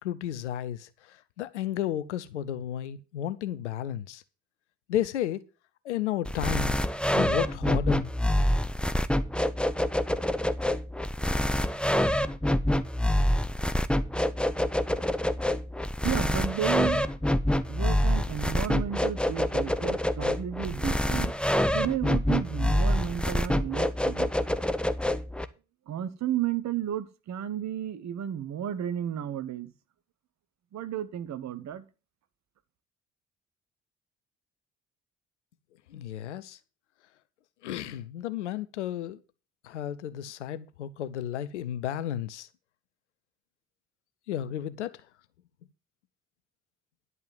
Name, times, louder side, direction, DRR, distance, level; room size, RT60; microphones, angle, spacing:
voice 1, 0.0-4.2 4.9-5.4 5.8-6.8 7.1-8.1 35.9-36.6 37.6-39.2 39.6-42.5 44.3-45.0, left 11 dB, 85° left, 0.7 m, -33 dB
sound 1, 6.2-25.4, left 1 dB, 5° left, 1.0 m, -26 dB
voice 2, 16.0-17.1 17.7-21.3 21.7-24.5 25.9-29.7 30.7-31.8, right 11 dB, 55° right, 1.2 m, -33 dB
11.0 x 5.5 x 7.7 m
figure-of-eight pair, 45°, 34 cm